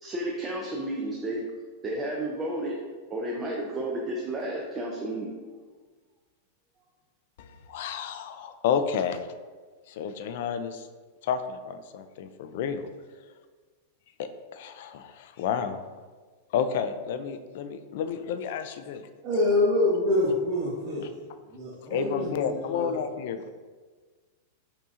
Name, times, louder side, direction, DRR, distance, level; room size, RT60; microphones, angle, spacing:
voice 1, 0.0-1.4 1.8-2.8 3.1-5.3, right 1 dB, 20° right, -2 dB, 0.4 m, -32 dB
voice 2, 7.4-9.3 9.9-10.9 11.2-12.9 14.2-15.8 16.5-19.1 21.9-23.5, left 7 dB, 60° left, 10 dB, 0.3 m, -31 dB
voice 3, 19.2-21.1 21.5-23.0, left 2 dB, 35° right, -9 dB, 1.1 m, -26 dB
5.5 x 2.7 x 2.5 m, 1.4 s
supercardioid pair, 155°, 0 cm